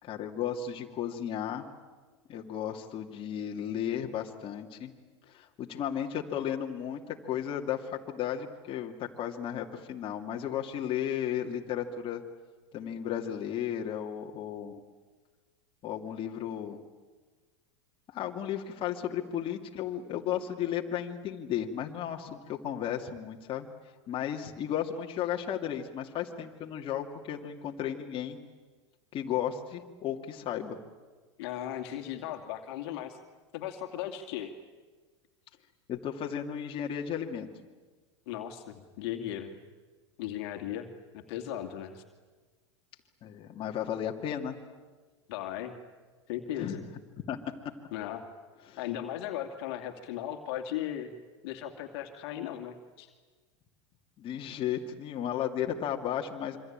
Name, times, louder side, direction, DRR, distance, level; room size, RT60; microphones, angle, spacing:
voice 1, 0.0-1.7 2.3-4.9 5.3-12.2 12.7-14.8 15.8-16.8 18.1-23.7 24.1-28.4 29.1-30.8 35.9-37.5 43.2-44.6 46.6-46.8 47.3-47.4 48.7-48.8 54.2-56.6, left 9 dB, 35° left, 1 dB, 2.5 m, -34 dB
voice 2, 31.4-33.2 33.5-34.5 38.3-39.5 40.2-42.0 45.3-45.8 46.3-46.8 47.9-48.2 48.8-51.1 51.4-53.1, left 11 dB, 60° left, 4 dB, 2.5 m, -37 dB
27.0 x 25.0 x 8.9 m, 1.4 s
hypercardioid pair, 90°, 15 cm